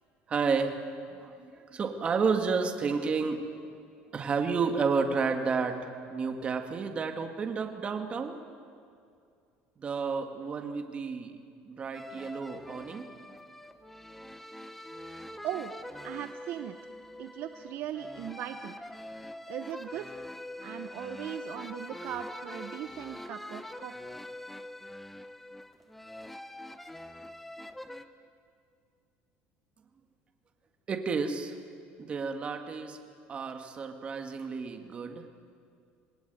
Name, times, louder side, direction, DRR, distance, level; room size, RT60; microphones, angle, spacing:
voice 1, 0.3-0.8 1.1-3.5 4.1-8.4 9.8-11.4 11.6-13.1 30.9-31.6 32.0-33.0 33.3-35.2, right 5 dB, 25° right, 5 dB, 2.0 m, -31 dB
sound 1, 11.9-28.0, left 1 dB, 5° left, 0.9 m, -44 dB
voice 2, 16.0-16.8 17.2-18.8 19.5-20.2 20.6-23.9, right 11 dB, 50° right, 9 dB, 0.9 m, -39 dB
27.0 x 20.0 x 9.5 m, 2.4 s
cardioid pair, 155°, 4 cm